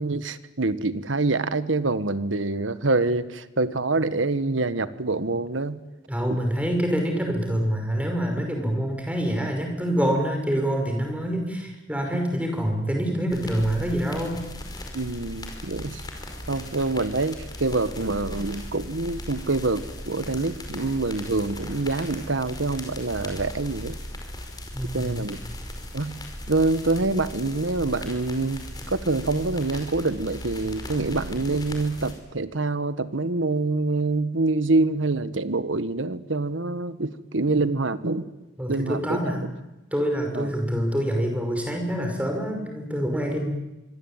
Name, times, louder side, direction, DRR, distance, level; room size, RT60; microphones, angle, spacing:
voice 1, 0.0-5.8 6.3-6.4 14.9-16.0 16.5-24.0 24.9-25.4 25.9-26.2 26.5-38.3 38.7-39.4 40.3-40.5, right 3 dB, 85° right, 13 dB, 1.4 m, -26 dB
voice 2, 6.1-14.4 24.7-25.2 38.6-39.4 39.9-43.4, equal, 5° right, 3 dB, 5.7 m, -26 dB
sound 1, 13.3-32.1, left 1 dB, 20° left, 5.1 m, -38 dB
26.0 x 24.0 x 9.0 m, 1.0 s
head